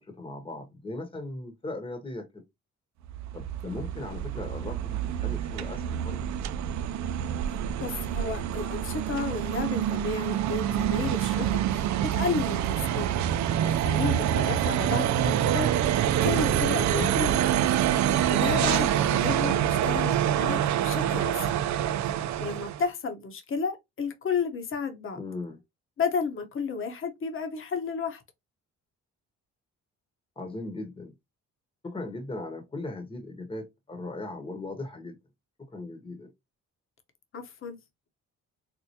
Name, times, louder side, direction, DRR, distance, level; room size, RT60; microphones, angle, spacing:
voice 1, 0.0-2.4 3.3-6.2 16.8-17.1 25.1-25.6 30.4-31.1 31.8-35.2 35.6-36.3, left 2 dB, 15° left, 1.0 m, -38 dB
sound 1, 3.0-22.9, right 10 dB, 70° right, 0.5 m, -26 dB
voice 2, 7.5-13.2 13.6-16.0 16.2-17.4 18.0-21.6 22.0-25.2 26.0-28.2 37.3-37.8, left 5 dB, 45° left, 1.0 m, -32 dB
4.3 x 2.1 x 2.8 m
cardioid pair, 90°, 30 cm